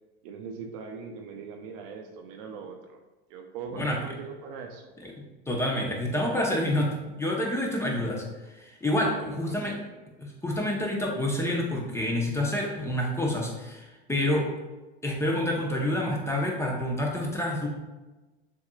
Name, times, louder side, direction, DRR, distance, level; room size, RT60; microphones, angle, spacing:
voice 1, 0.2-3.0 3.3-4.9 8.9-9.6, right 5 dB, 60° right, 4 dB, 0.7 m, -40 dB
voice 2, 5.0-8.2 8.5-9.1 9.4-9.8 10.2-14.5 15.0-17.7, left 1 dB, 10° left, -1 dB, 0.9 m, -28 dB
6.9 x 2.8 x 2.4 m, 1.1 s
hypercardioid pair, 80°, 31 cm